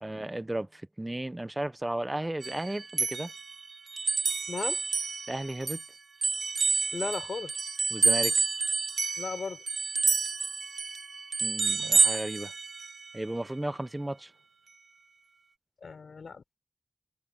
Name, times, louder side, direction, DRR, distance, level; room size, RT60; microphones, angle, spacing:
voice 1, 0.0-3.3 5.3-5.8 7.9-8.3 11.4-12.5 13.1-14.3, right 1 dB, 20° right, 1.1 m, -34 dB
sound 1, 2.4-5.9 6.2-13.1, right 4 dB, 75° right, 1.6 m, -29 dB
voice 2, 4.5-4.8 6.9-7.5 9.2-9.6 15.8-16.6, left 5 dB, 85° left, 5.4 m, -36 dB
wide cardioid pair, 60°, 0 cm